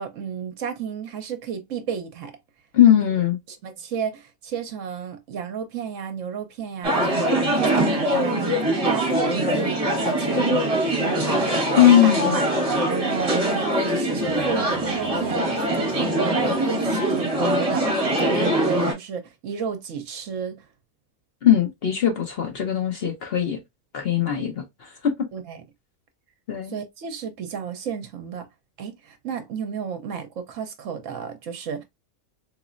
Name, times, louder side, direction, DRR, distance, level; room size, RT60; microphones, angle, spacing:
voice 1, 0.0-2.3 3.0-3.1 3.5-10.6 10.9-11.6 12.0-12.5 12.9-15.5 15.7-20.6 25.3-25.6 26.7-28.5 28.8-31.8, right 6 dB, 65° right, 1.0 m, -32 dB
voice 2, 2.7-3.4 11.8-12.4 21.4-23.6 23.9-25.1 26.5-26.7, left 10 dB, 50° left, 0.9 m, -19 dB
sound 1, 6.8-18.9, right 1 dB, 25° right, 1.4 m, -23 dB
4.0 x 3.1 x 2.4 m
omnidirectional pair, 1.5 m